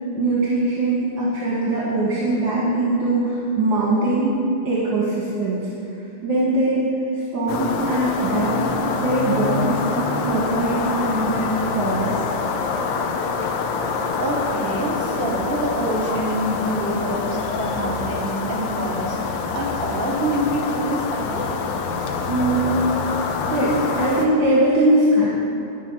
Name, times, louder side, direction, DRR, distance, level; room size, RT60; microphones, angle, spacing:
voice 1, 0.1-4.4 4.6-5.7 6.2-6.8 7.1-8.7 9.0-12.2 22.3-22.8 23.5-25.3, right 2 dB, 60° right, -7 dB, 2.2 m, -21 dB
sound 1, 7.5-24.3, left 5 dB, 70° left, 1.3 m, -26 dB
voice 2, 14.2-19.2 19.5-21.5, right 1 dB, 40° right, -2 dB, 0.9 m, -26 dB
11.5 x 5.9 x 5.5 m, 2.7 s
omnidirectional pair, 2.4 m